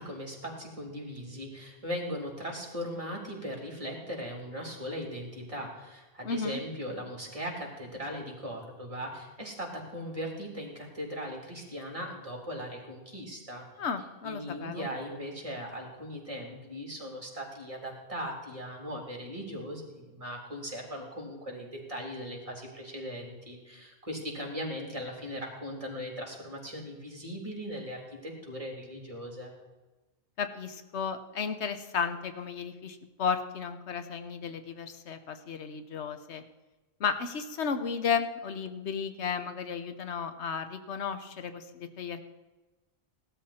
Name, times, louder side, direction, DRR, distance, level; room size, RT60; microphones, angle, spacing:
voice 1, 0.0-13.6 14.2-29.5, equal, 30° right, -1 dB, 3.4 m, -39 dB
voice 2, 6.2-6.6 13.8-14.9 30.4-36.4 37.0-42.3, left 6 dB, 85° left, 9 dB, 1.2 m, -34 dB
17.5 x 12.5 x 4.3 m, 1.2 s
omnidirectional pair, 1.1 m